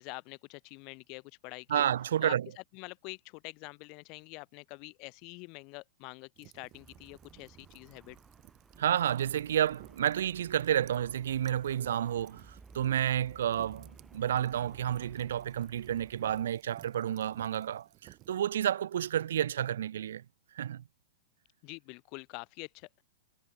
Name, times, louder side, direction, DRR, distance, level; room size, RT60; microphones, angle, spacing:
voice 1, 0.0-1.9 2.2-2.3 2.7-8.2 21.6-23.0, left 31 dB, 40° left, 1.0 m, -46 dB
voice 2, 1.7-2.5 8.8-20.2 20.5-20.8, right 10 dB, 60° right, 0.5 m, -30 dB
sound 1, 6.4-18.4, right 20 dB, 35° right, 2.1 m, -58 dB
Traffic noise roadway noise, 6.7-16.5, right 4 dB, 10° right, 3.3 m, -57 dB
figure-of-eight pair, 100°, 0 cm